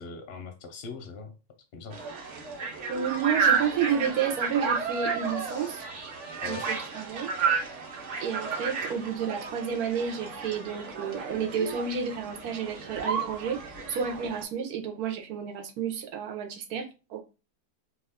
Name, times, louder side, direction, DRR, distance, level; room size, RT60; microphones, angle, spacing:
voice 1, 0.0-1.4 1.7-2.1 5.4-5.8 6.1-6.7, left 4 dB, 60° left, 0.7 m, -42 dB
sound 1, 1.9-14.4, right 5 dB, 60° right, 1.0 m, -32 dB
voice 2, 2.9-5.8 6.4-7.3 8.2-17.2, right 7 dB, 90° right, 1.2 m, -31 dB
2.7 x 2.3 x 3.5 m
omnidirectional pair, 1.6 m